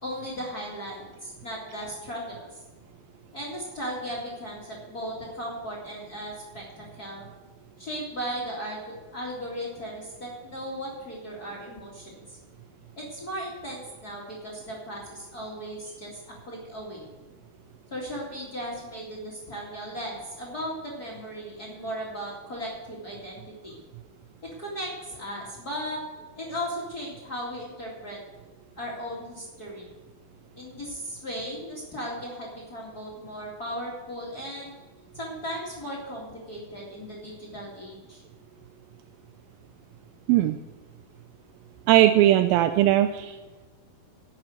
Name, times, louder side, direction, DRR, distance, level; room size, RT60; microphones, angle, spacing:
voice 1, 0.0-2.6 3.3-7.3 7.8-8.8 9.1-12.4 13.0-17.1 17.9-23.8 24.6-26.0 26.4-28.2 28.8-29.9 30.6-34.8 35.1-38.2, equal, 30° left, -4 dB, 2.1 m, -36 dB
voice 2, 41.9-43.4, right 13 dB, 80° right, 8 dB, 2.2 m, -19 dB
11.5 x 7.6 x 7.9 m, 1.3 s
omnidirectional pair, 4.4 m